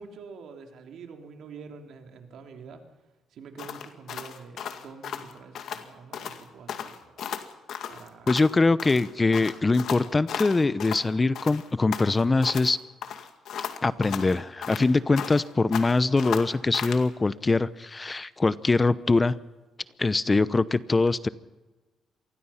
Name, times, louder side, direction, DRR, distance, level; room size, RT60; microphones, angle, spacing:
voice 1, 0.0-2.8 3.3-7.2 7.9-8.3, right 5 dB, 75° right, 4 dB, 3.2 m, -46 dB
sound 1, 3.6-5.9 6.1-6.4 6.7-8.5 8.8-11.1 11.3-12.7 13.0-15.5 15.7-17.1, left 8 dB, 70° left, 2.2 m, -35 dB
voice 2, 8.3-12.8 13.8-19.4 20.0-21.3, left 3 dB, 25° left, 16 dB, 0.8 m, -23 dB
26.5 x 20.5 x 5.8 m, 1.2 s
cardioid pair, 90°, 0 cm